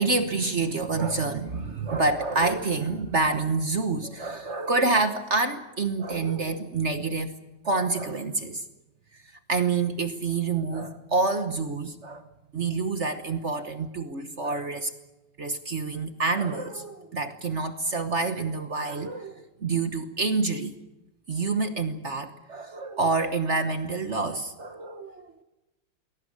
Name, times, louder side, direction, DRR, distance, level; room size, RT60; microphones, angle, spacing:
voice 1, 0.0-7.4 7.6-8.6 9.1-12.2 12.5-14.9 15.4-20.7 21.3-25.3, right 3 dB, 40° right, 9 dB, 1.1 m, -27 dB
21.5 x 17.5 x 9.7 m, 1.0 s
omnidirectional pair, 2.4 m